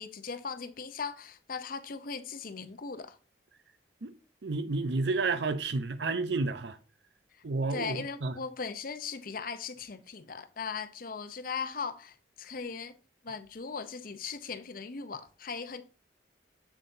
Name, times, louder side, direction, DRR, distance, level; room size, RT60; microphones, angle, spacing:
voice 1, 0.0-3.2 7.7-12.9 13.2-15.8, left 5 dB, 50° left, 0.7 m, -38 dB
voice 2, 4.4-6.8 7.4-8.3, right 3 dB, 70° right, 0.7 m, -31 dB
7.3 x 7.2 x 2.7 m
head